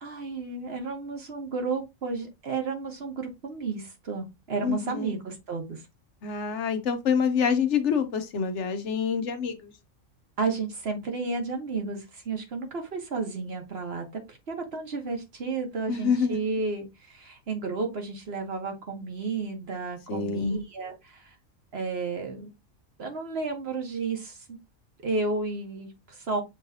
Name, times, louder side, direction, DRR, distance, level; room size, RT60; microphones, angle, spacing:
voice 1, 0.0-5.8 10.4-21.3 21.7-22.5 23.0-24.6 25.0-26.4, right 4 dB, 55° right, 1.3 m, -32 dB
voice 2, 4.6-5.1 6.2-9.7 15.9-16.4 20.1-20.6, left 6 dB, 70° left, 1.0 m, -26 dB
6.5 x 3.1 x 2.6 m
omnidirectional pair, 1.3 m